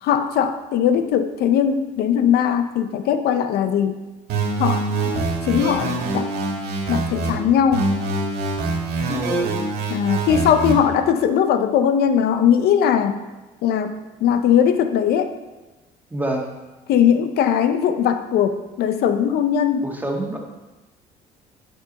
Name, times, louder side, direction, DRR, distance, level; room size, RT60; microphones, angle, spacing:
voice 1, 0.0-4.0 4.6-6.3 6.9-7.9 9.9-13.2 13.6-15.3 16.9-19.9, left 8 dB, 70° left, 9 dB, 0.6 m, -20 dB
sound 1, 4.3-7.3 7.7-10.7, right 2 dB, 75° right, 2.1 m, -24 dB
voice 2, 9.1-9.6 16.1-16.5 19.8-20.4, right 1 dB, 10° right, 0 dB, 1.5 m, -27 dB
10.5 x 4.6 x 5.2 m, 1.1 s
cardioid pair, 110°, 17 cm